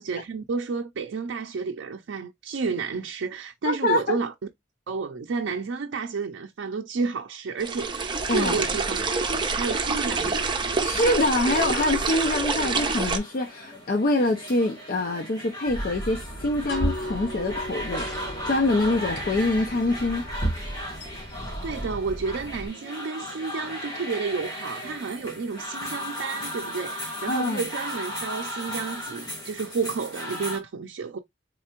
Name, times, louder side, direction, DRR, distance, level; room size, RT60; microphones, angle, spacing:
voice 1, 0.0-4.3 4.9-8.1 8.3-9.0 9.3-10.5 21.3-31.2, right 4 dB, 80° right, 0.4 m, -31 dB
voice 2, 3.6-4.2 8.3-8.7 10.8-18.1 18.4-20.3 27.3-27.6, left 2 dB, 50° left, 0.5 m, -25 dB
sound 1, 7.6-13.2, right 4 dB, 25° right, 0.7 m, -27 dB
sound 2, 13.0-30.6, equal, 20° left, 1.7 m, -36 dB
sound 3, 15.7-22.7, right 1 dB, 70° left, 2.1 m, -34 dB
3.8 x 3.3 x 2.9 m
head